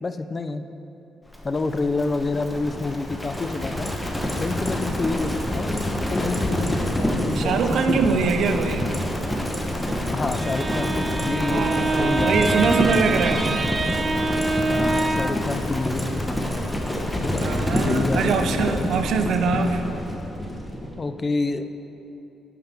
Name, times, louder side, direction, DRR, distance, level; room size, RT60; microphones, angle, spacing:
voice 1, 0.0-0.6 1.4-8.3 10.1-12.5 14.7-16.3 17.2-18.8 21.0-21.7, left 3 dB, 30° left, 9 dB, 0.5 m, -28 dB
Livestock farm animals working animals, 1.3-21.0, left 1 dB, 10° left, 1.0 m, -27 dB
voice 2, 7.3-8.9 11.5-13.8 17.4-19.8, right 5 dB, 70° right, 7 dB, 0.6 m, -23 dB
Bowed string instrument, 10.2-15.5, right 2 dB, 25° right, 0.5 m, -26 dB
9.4 x 5.2 x 6.1 m, 2.9 s
cardioid pair, 85°, 0 cm